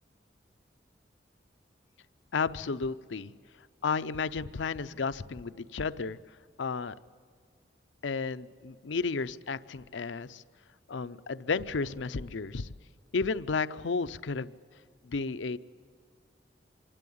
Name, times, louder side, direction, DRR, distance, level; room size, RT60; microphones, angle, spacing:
voice 1, 2.3-3.3 3.8-6.2 6.6-6.9 8.0-10.4 10.9-12.7 13.1-14.5 15.0-15.6, left 4 dB, 85° left, 13 dB, 0.6 m, -32 dB
26.0 x 12.5 x 8.5 m, 2.2 s
head